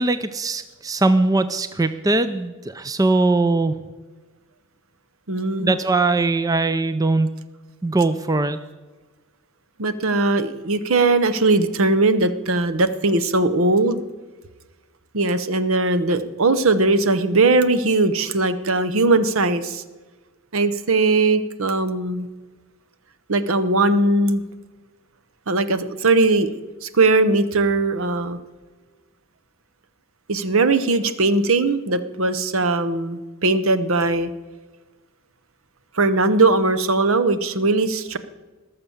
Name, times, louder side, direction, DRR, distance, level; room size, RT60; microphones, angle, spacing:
voice 1, 0.0-3.8 5.6-7.3 7.8-8.6, right 2 dB, 15° right, 12 dB, 0.4 m, -20 dB
voice 2, 5.3-5.8 9.8-14.0 15.1-19.8 20.5-22.3 23.3-24.4 25.5-26.5 26.8-28.4 30.3-34.3 36.0-38.2, right 3 dB, 70° right, 12 dB, 0.8 m, -19 dB
19.5 x 6.8 x 7.1 m, 1.3 s
head